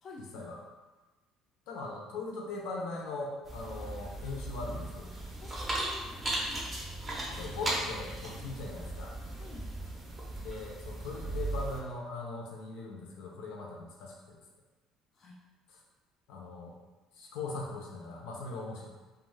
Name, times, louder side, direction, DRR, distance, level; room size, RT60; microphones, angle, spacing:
voice 1, 0.0-0.5 5.4-7.1 9.3-9.7 15.2-15.3, left 2 dB, 35° left, -2 dB, 0.4 m, -52 dB
voice 2, 1.7-5.1 7.3-9.2 10.4-14.4 15.7-15.8 16.3-16.7 17.1-18.9, left 3 dB, 80° left, -1 dB, 0.6 m, -40 dB
sound 1, 3.4-11.8, right 1 dB, 20° right, 0.5 m, -37 dB
2.4 x 2.3 x 3.1 m, 1.2 s
cardioid pair, 145°, 0 cm